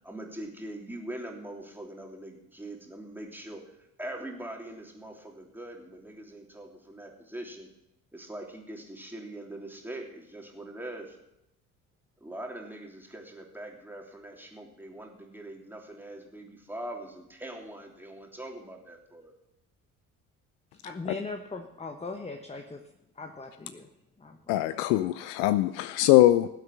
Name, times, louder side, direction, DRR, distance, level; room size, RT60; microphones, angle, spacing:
voice 1, 0.0-7.7 8.1-11.2 12.2-19.3, right 1 dB, 5° right, 0 dB, 3.1 m, -42 dB
voice 2, 20.8-22.8 23.2-23.9 24.2-24.6, left 3 dB, 15° left, 5 dB, 1.2 m, -39 dB
voice 3, 24.5-26.5, left 15 dB, 60° left, 14 dB, 0.6 m, -22 dB
19.0 x 8.0 x 6.1 m, 0.87 s
figure-of-eight pair, 55°, 44 cm